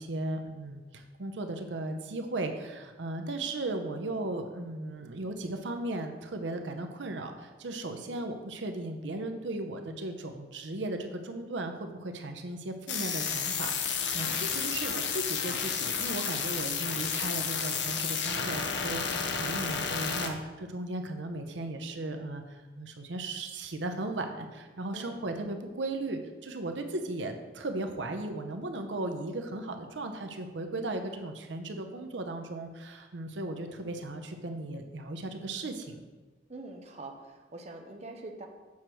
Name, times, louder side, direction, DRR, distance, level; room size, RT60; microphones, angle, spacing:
voice 1, 0.0-36.0, right 2 dB, 85° right, 5 dB, 0.7 m, -36 dB
sound 1, 12.9-20.3, left 6 dB, 80° left, 0.8 m, -31 dB
voice 2, 14.1-14.5 14.7-14.8 24.9-25.2 36.5-38.5, right 2 dB, 35° right, 3 dB, 0.8 m, -45 dB
7.1 x 6.2 x 4.5 m, 1.3 s
head